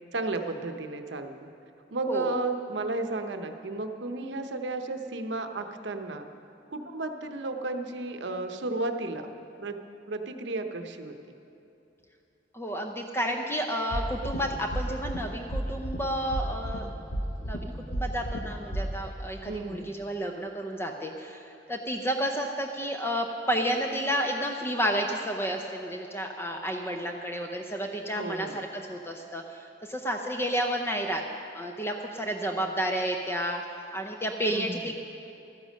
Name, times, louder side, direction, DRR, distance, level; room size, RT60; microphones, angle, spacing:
voice 1, 0.1-1.5 1.9-6.3 6.7-9.3 9.6-9.8 10.1-11.1 19.5-19.9 28.2-28.6 34.5-34.9, right 2 dB, 70° right, 6 dB, 0.8 m, -33 dB
voice 2, 12.5-16.9 17.4-31.2 31.5-33.6 33.9-34.9, equal, 10° left, 2 dB, 0.6 m, -31 dB
sound 1, 13.9-14.4 14.7-15.2 15.5-16.0 16.3-16.8 17.1-17.6 17.9-18.4 18.7-18.8, right 1 dB, 80° left, 1.3 m, -31 dB
13.0 x 10.5 x 6.4 m, 2.9 s
head